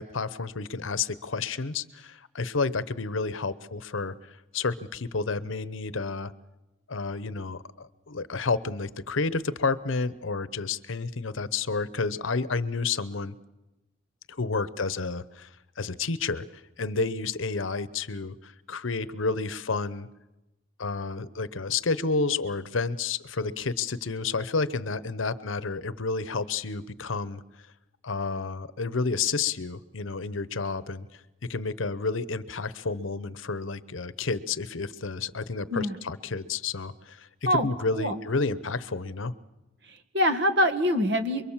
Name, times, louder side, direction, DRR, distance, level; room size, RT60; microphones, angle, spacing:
voice 1, 0.0-6.3 6.9-13.3 14.3-15.5 15.8-20.1 20.8-27.4 28.0-31.2 31.5-39.3, left 4 dB, 85° left, 15 dB, 0.9 m, -30 dB
voice 2, 39.9-41.5, equal, 55° right, 8 dB, 1.9 m, -25 dB
28.0 x 22.5 x 7.4 m, 1.0 s
head